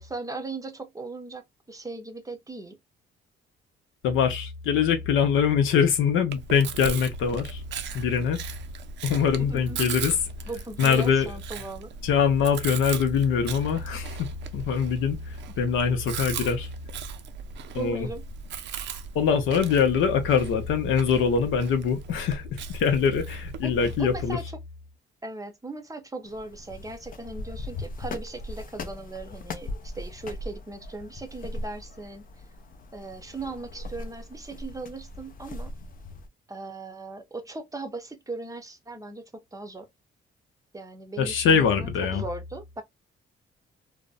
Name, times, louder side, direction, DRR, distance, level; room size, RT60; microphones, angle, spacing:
voice 1, 0.0-2.8 9.4-9.9 10.5-11.9 15.5-15.6 17.8-18.2 23.6-24.4 25.2-32.2 32.9-35.7 36.5-39.9 40.7-42.8, right 2 dB, 15° right, 0.6 m, -38 dB
voice 2, 4.0-7.6 7.9-8.4 9.0-10.1 10.8-11.3 12.0-16.7 17.7-18.1 19.1-24.4 41.2-42.2, left 6 dB, 85° left, 0.7 m, -23 dB
Chewing mastication, 6.3-24.3, right 6 dB, 65° right, 0.5 m, -38 dB
sound 1, 26.3-36.3, left 2 dB, 45° left, 0.5 m, -39 dB
2.5 x 2.1 x 2.3 m
cardioid pair, 90°, 20 cm